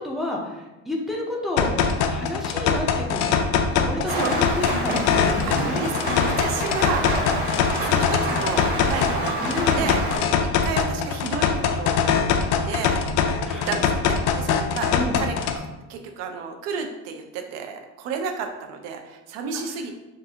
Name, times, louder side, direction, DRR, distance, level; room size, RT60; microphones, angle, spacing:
voice 1, 0.0-1.7 2.1-3.2 3.7-5.9 9.4-9.9 13.4-13.8 14.9-15.2 19.5-20.0, left 1 dB, ahead, -2 dB, 0.5 m, -30 dB
sound 1, 1.6-15.6, left 6 dB, 85° left, 0.6 m, -23 dB
Rain, 4.1-10.2, right 1 dB, 30° right, 1.3 m, -28 dB
voice 2, 5.5-7.1 7.8-12.2 12.7-13.0 13.5-15.6 15.9-20.0, right 5 dB, 60° right, 5 dB, 0.5 m, -32 dB
7.3 x 2.4 x 2.7 m, 1.0 s
cardioid pair, 165°, 30 cm